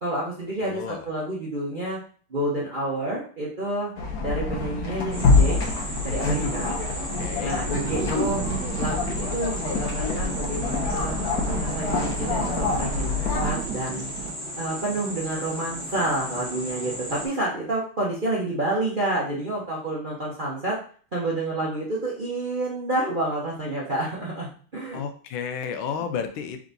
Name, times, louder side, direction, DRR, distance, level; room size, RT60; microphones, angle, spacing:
voice 1, 0.0-2.0 2.3-3.9 4.2-5.6 6.0-6.7 7.3-8.4 8.8-11.2 11.6-13.1 13.4-14.1 14.6-20.8 21.1-25.0 25.9-26.0, right 1 dB, 40° right, -5 dB, 0.7 m, -29 dB
voice 2, 0.6-1.1 7.2-7.6 24.9-26.6, left 7 dB, 80° left, 7 dB, 1.4 m, -32 dB
sound 1, 4.0-13.5, left 3 dB, 55° left, 1.2 m, -26 dB
sound 2, 5.1-17.3, equal, 15° right, 1.4 m, -35 dB
sound 3, 7.7-14.3, right 8 dB, 80° right, 0.9 m, -35 dB
3.8 x 3.5 x 3.9 m, 0.44 s
omnidirectional pair, 2.3 m